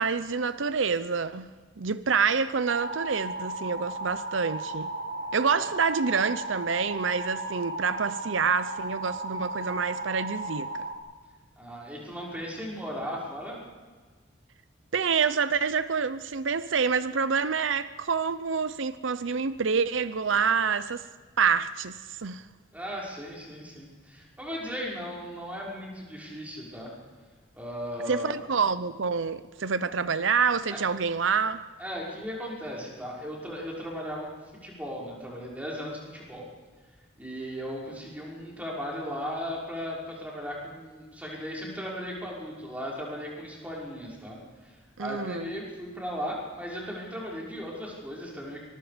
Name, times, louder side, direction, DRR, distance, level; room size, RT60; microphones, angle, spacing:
voice 1, 0.0-1.5 1.8-4.9 5.3-10.7 14.9-21.1 21.4-22.4 28.1-31.6 45.0-45.5, right 5 dB, 85° right, 0.8 m, -27 dB
sound 1, 2.7-11.0, right 2 dB, 50° right, 2.1 m, -35 dB
voice 2, 11.6-13.6 22.7-26.9 27.5-28.4 30.7-30.8 31.8-34.3 34.6-36.4 37.2-44.7 45.0-48.6, equal, 10° right, 5.7 m, -36 dB
24.5 x 21.5 x 5.2 m
head